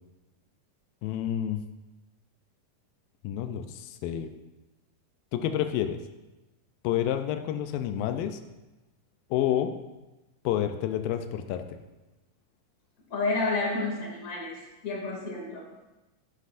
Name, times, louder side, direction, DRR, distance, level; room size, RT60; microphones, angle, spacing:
voice 1, 1.0-1.6 3.2-4.3 5.3-6.0 6.8-8.4 9.3-9.7 10.4-11.6, left 11 dB, 85° left, 7 dB, 2.3 m, -29 dB
voice 2, 13.1-14.5 14.8-15.6, left 3 dB, 45° left, -2 dB, 3.2 m, -30 dB
13.5 x 11.0 x 2.5 m, 1.1 s
omnidirectional pair, 4.0 m